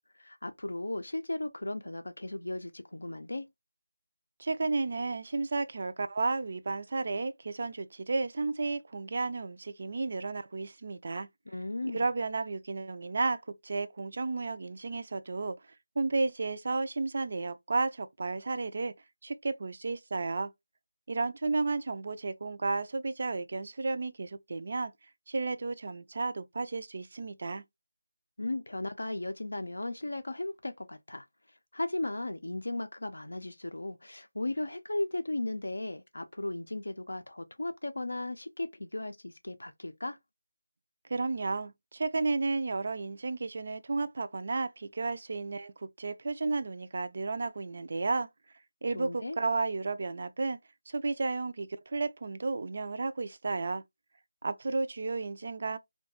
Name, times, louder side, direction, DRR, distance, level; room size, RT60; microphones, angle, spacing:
voice 1, 0.2-3.5 11.5-12.1 28.4-31.3 31.7-40.2 48.9-49.4, left 2 dB, 80° left, 0.4 m, -36 dB
voice 2, 4.4-11.3 11.9-15.6 16.0-18.9 19.2-20.5 21.1-24.9 25.3-27.6 41.1-48.3 48.8-50.6 50.9-53.8 54.4-55.8, right 3 dB, 45° right, 0.3 m, -32 dB
2.3 x 2.2 x 2.8 m
figure-of-eight pair, 165°, 0 cm